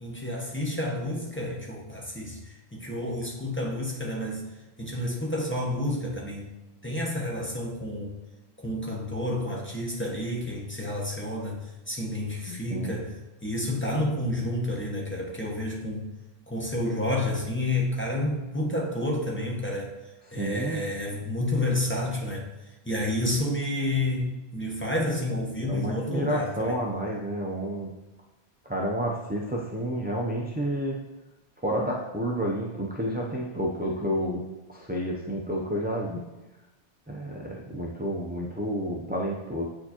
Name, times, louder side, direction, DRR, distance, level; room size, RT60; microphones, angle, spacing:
voice 1, 0.0-4.5 4.8-6.5 6.8-8.2 8.6-11.6 11.9-16.1 16.5-19.9 20.3-22.5 22.8-26.8, left 1 dB, 10° left, -2 dB, 0.9 m, -30 dB
voice 2, 12.5-13.0 20.3-20.8 25.6-27.9 28.6-31.0 31.6-36.2 37.1-39.6, equal, 15° right, -3 dB, 0.3 m, -30 dB
8.0 x 4.4 x 2.9 m, 1.0 s
omnidirectional pair, 1.1 m